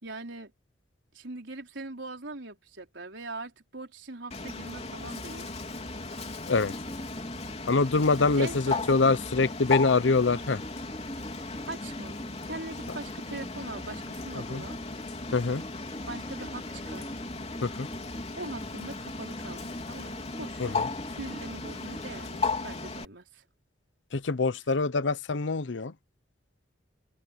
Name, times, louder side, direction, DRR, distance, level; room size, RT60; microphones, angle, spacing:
voice 1, 0.0-0.5 1.1-5.7 8.4-9.0 11.7-14.8 16.1-17.2 18.4-20.9 21.2-23.4, right 2 dB, 90° right, 4.0 m, -41 dB
Bird, 4.3-23.1, left 3 dB, 35° left, 3.6 m, -36 dB
sound 1, 6.7-22.0, equal, 20° left, 2.9 m, -45 dB
voice 2, 7.7-10.6 14.5-14.6 15.3-15.6 17.6-17.9 20.6-20.9 24.1-25.9, left 3 dB, 85° left, 0.8 m, -25 dB
head